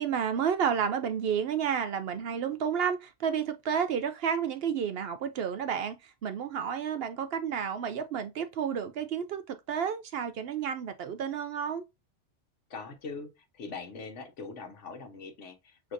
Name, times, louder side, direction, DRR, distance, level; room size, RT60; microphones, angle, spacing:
voice 1, 0.0-11.8, right 7 dB, 65° right, 0.7 m, -31 dB
voice 2, 12.7-15.9, left 4 dB, 80° left, 1.3 m, -42 dB
6.2 x 2.8 x 2.6 m
omnidirectional pair, 1.2 m